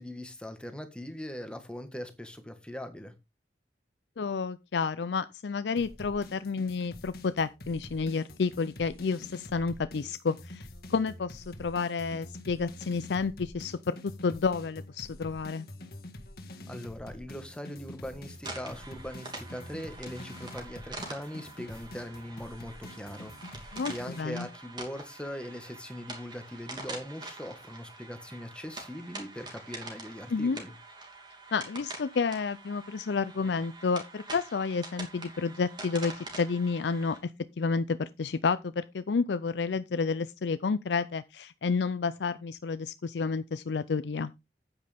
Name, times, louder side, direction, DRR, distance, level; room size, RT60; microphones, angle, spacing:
voice 1, 0.0-3.1 16.7-30.7, equal, 5° left, 1.5 m, -41 dB
voice 2, 4.2-15.7 23.7-24.5 30.3-30.6 31.5-37.3 37.6-44.3, left 4 dB, 80° left, 0.5 m, -30 dB
sound 1, 5.8-24.2, left 1 dB, 55° left, 1.7 m, -46 dB
sound 2, 18.4-37.2, right 2 dB, 25° right, 2.8 m, -45 dB
9.5 x 8.9 x 3.5 m
head